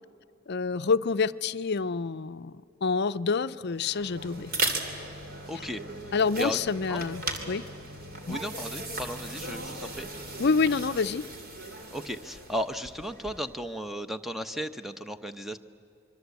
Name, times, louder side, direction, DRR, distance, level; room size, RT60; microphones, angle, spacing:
voice 1, 0.5-2.5 2.8-4.5 6.1-7.6 8.3-8.4 10.4-11.2, left 4 dB, 55° left, 14 dB, 0.5 m, -27 dB
sound 1, 3.7-13.6, right 2 dB, 45° right, 2.8 m, -37 dB
voice 2, 5.5-5.8 6.4-6.6 6.9-7.1 8.3-10.1 11.9-15.6, equal, ahead, 9 dB, 0.8 m, -35 dB
26.0 x 23.0 x 8.3 m, 2.8 s
head